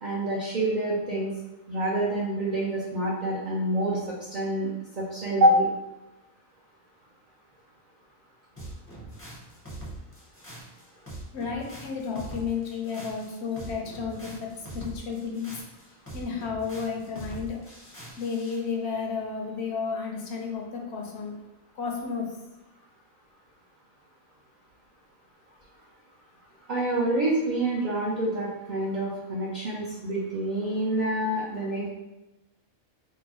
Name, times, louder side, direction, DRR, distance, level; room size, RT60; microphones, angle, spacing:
voice 1, 0.0-1.3 1.7-4.7 5.0-5.7 26.7-31.9, right 1 dB, 50° right, -5 dB, 0.6 m, -26 dB
sound 1, 8.6-18.6, right 1 dB, 15° left, 0.5 m, -43 dB
voice 2, 11.3-15.5 16.1-17.6 18.2-21.3 21.7-22.3, left 5 dB, 65° left, 0 dB, 0.8 m, -32 dB
3.8 x 2.0 x 2.9 m, 0.94 s
omnidirectional pair, 1.3 m